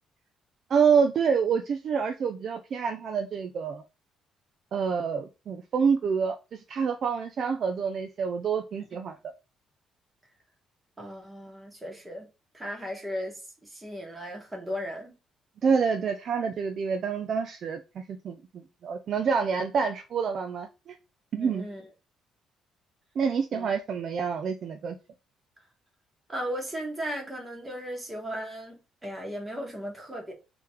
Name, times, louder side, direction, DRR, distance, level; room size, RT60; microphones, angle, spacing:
voice 1, 0.7-3.8 4.7-9.2 15.6-18.4 18.8-21.0 21.3-21.6 23.2-25.0, right 6 dB, 40° right, 0.5 m, -27 dB
voice 2, 11.0-12.3 12.5-15.1 21.3-21.8 23.5-23.7 26.3-30.3, equal, 10° right, 1.4 m, -36 dB
3.7 x 3.0 x 4.8 m
cardioid pair, 170°, 0 cm